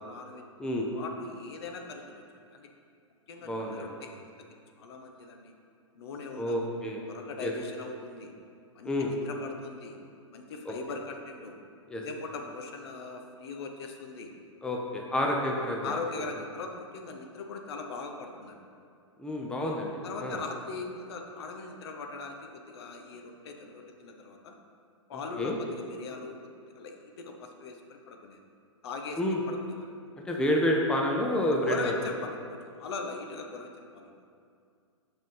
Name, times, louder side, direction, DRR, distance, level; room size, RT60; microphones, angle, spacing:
voice 1, 0.0-0.4 0.9-2.2 2.5-2.7 3.3-4.3 4.8-5.5 5.9-6.7 7.1-8.3 8.7-10.0 10.3-11.6 12.0-14.3 15.8-18.6 20.0-24.6 25.1-28.4 28.8-29.9 31.5-34.1, left 3 dB, 50° left, 3 dB, 1.0 m, -40 dB
voice 2, 3.4-3.9 6.3-7.0 7.4-7.5 8.8-9.1 10.6-10.7 11.9-12.0 14.6-16.0 19.2-20.4 25.4-25.6 29.2-29.4 30.3-31.9, left 1 dB, 5° left, -1 dB, 0.8 m, -29 dB
7.4 x 5.3 x 5.5 m, 2.4 s
figure-of-eight pair, 115°, 16 cm